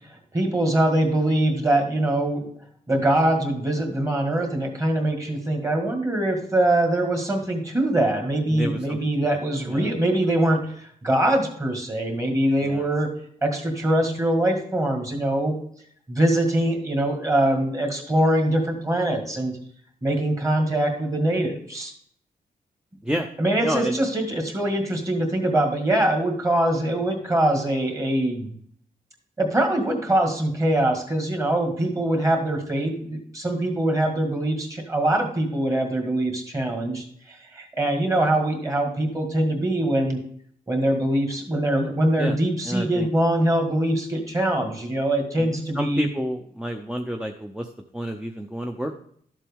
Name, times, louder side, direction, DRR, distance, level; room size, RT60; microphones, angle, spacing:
voice 1, 0.3-2.5 2.9-13.1 13.4-15.6 16.1-19.5 20.0-21.9 23.4-28.6 29.4-40.2 40.7-46.1, right 1 dB, 20° right, 3 dB, 1.8 m, -23 dB
voice 2, 8.5-9.0 9.7-9.9 12.6-12.8 23.0-23.3 23.6-24.0 42.2-42.4 42.6-43.1 45.4-47.7 47.9-49.0, equal, 5° right, 3 dB, 0.5 m, -29 dB
12.5 x 7.4 x 3.5 m, 0.64 s
wide cardioid pair, 180°, 15 cm